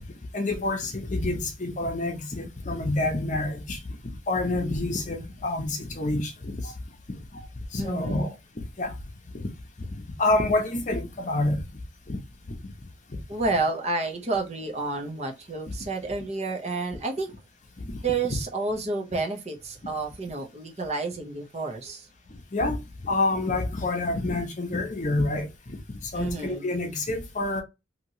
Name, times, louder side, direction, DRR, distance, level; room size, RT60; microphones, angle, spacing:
voice 1, 0.3-3.8 4.3-6.7 7.1-7.2 7.7-8.3 8.8-8.9 9.3-9.5 10.2-11.6 12.1-12.2 17.9-18.0 22.5-25.8 26.1-27.6, left 2 dB, 40° left, 0.7 m, -27 dB
voice 2, 7.8-8.3 13.3-17.3 18.0-22.1 26.1-26.7, right 3 dB, 35° right, 0.6 m, -30 dB
2.9 x 2.8 x 2.7 m
head